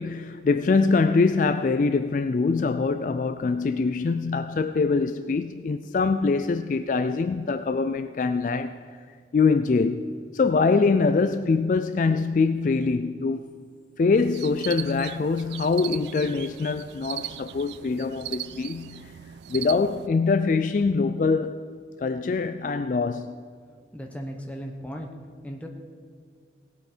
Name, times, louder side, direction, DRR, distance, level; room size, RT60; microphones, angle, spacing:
voice 1, 0.0-8.8 9.3-13.4 14.0-19.1 19.5-21.6 22.0-23.3, left 4 dB, 45° left, 0.3 m, -24 dB
sound 1, 14.2-20.1, right 13 dB, 70° right, 0.3 m, -38 dB
voice 2, 23.9-25.1 25.4-25.7, equal, 5° left, 1.1 m, -36 dB
18.0 x 8.2 x 4.4 m
head